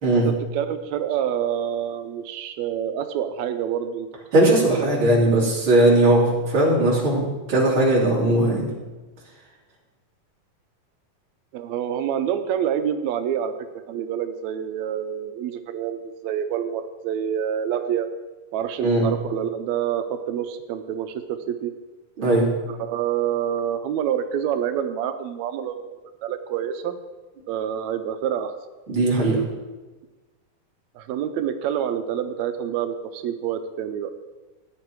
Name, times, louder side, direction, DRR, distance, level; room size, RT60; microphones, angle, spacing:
voice 1, 0.1-4.1 4.4-5.2 11.5-18.1 18.5-21.7 22.7-25.8 26.2-26.9 27.5-28.5 30.9-34.1, right 9 dB, 85° right, 8 dB, 1.6 m, -27 dB
voice 2, 4.3-8.7 18.8-19.1 22.2-22.5 28.9-29.4, right 1 dB, 35° right, -5 dB, 3.7 m, -19 dB
15.0 x 8.9 x 4.7 m, 1.2 s
omnidirectional pair, 3.9 m